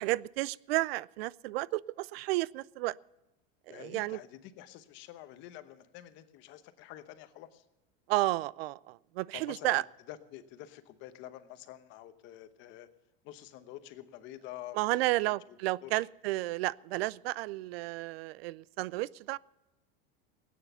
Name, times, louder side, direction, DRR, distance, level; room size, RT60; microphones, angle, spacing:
voice 1, 0.0-3.0 3.7-4.2 8.1-9.8 14.7-19.4, right 18 dB, 80° right, 23 dB, 0.5 m, -32 dB
voice 2, 3.7-7.6 9.3-12.9 13.2-15.6 15.8-15.9, left 13 dB, 40° left, 11 dB, 1.0 m, -48 dB
17.5 x 9.3 x 6.8 m, 1.0 s
supercardioid pair, 170°, 30 cm